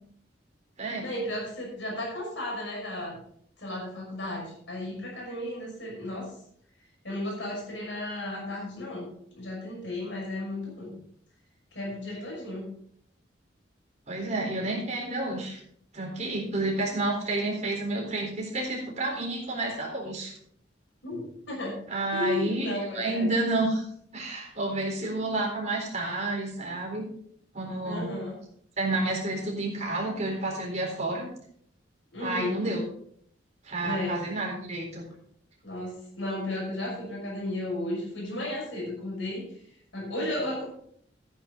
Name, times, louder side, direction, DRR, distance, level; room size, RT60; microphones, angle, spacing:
voice 1, 1.0-3.2 3.6-6.3 7.0-9.0 9.3-10.9 11.7-12.7 21.0-21.8 22.1-23.3 27.8-28.4 32.1-32.6 33.8-34.2 35.6-39.4 39.9-40.7, left 1 dB, 75° left, -2 dB, 5.8 m, -34 dB
voice 2, 14.1-15.6 15.9-20.3 21.9-23.8 24.1-27.0 27.5-28.1 28.8-31.3 32.2-32.8 33.6-35.0, right 2 dB, 40° right, -1 dB, 4.1 m, -30 dB
13.0 x 9.9 x 3.9 m, 0.65 s
head